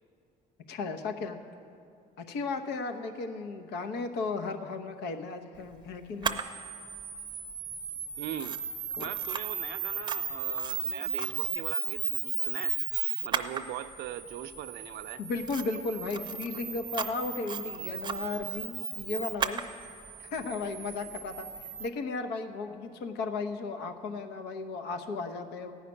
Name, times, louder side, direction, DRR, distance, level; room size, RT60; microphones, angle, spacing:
voice 1, 0.7-1.4 2.2-6.4 9.0-9.1 15.2-19.6 20.2-25.7, left 4 dB, 80° left, 6 dB, 0.9 m, -35 dB
Camera, 6.2-21.9, right 6 dB, 25° right, 0.6 m, -35 dB
voice 2, 8.2-8.6 9.0-12.8 13.2-15.2, right 12 dB, 75° right, 9 dB, 0.5 m, -40 dB
15.0 x 5.8 x 9.6 m, 2.5 s
cardioid pair, 110°, 17 cm